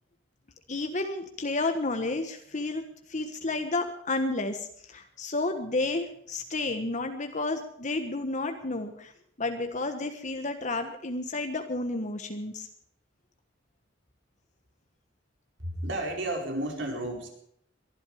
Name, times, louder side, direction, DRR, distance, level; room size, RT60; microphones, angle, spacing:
voice 1, 0.7-2.8 3.1-9.1 9.4-12.7, left 2 dB, 40° left, 6 dB, 1.4 m, -31 dB
voice 2, 15.6-17.3, right 1 dB, 65° right, 1 dB, 5.0 m, -32 dB
22.5 x 12.0 x 4.9 m, 0.69 s
head